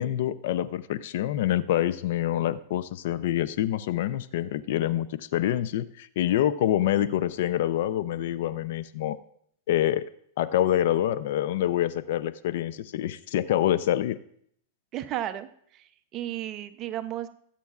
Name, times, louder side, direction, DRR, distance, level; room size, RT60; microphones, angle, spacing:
voice 1, 0.0-9.2 9.7-10.1 10.4-14.2, left 12 dB, 65° left, 15 dB, 0.5 m, -26 dB
voice 2, 14.9-17.3, right 12 dB, 35° right, 10 dB, 0.6 m, -34 dB
20.5 x 8.4 x 2.4 m, 0.66 s
supercardioid pair, 145°, 0 cm